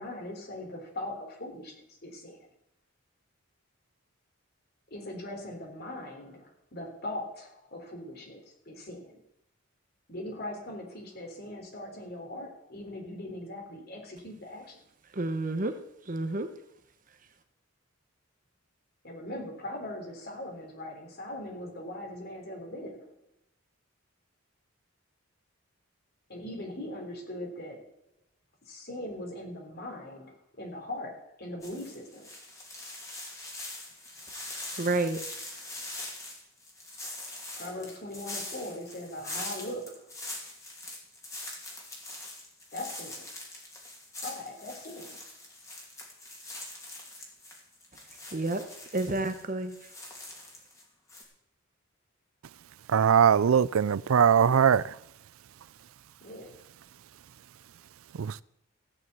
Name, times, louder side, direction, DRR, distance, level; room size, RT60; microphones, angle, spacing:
voice 1, 0.0-1.8 2.0-2.4 4.9-9.2 10.1-14.8 19.0-23.1 26.3-27.8 28.7-32.3 37.6-40.2 42.7-43.3 44.2-45.3 56.2-56.6, left 1 dB, 50° left, 3.5 m, -40 dB
voice 2, 15.1-15.7 16.1-16.5 34.8-35.2 48.3-48.6 48.9-49.8, right 2 dB, 40° right, 1.0 m, -29 dB
sound 1, 31.6-50.8 51.1-51.2, left 2 dB, 15° left, 2.7 m, -43 dB
voice 3, 52.9-54.8 58.2-58.4, right 7 dB, 90° right, 0.4 m, -21 dB
15.0 x 6.3 x 8.2 m
head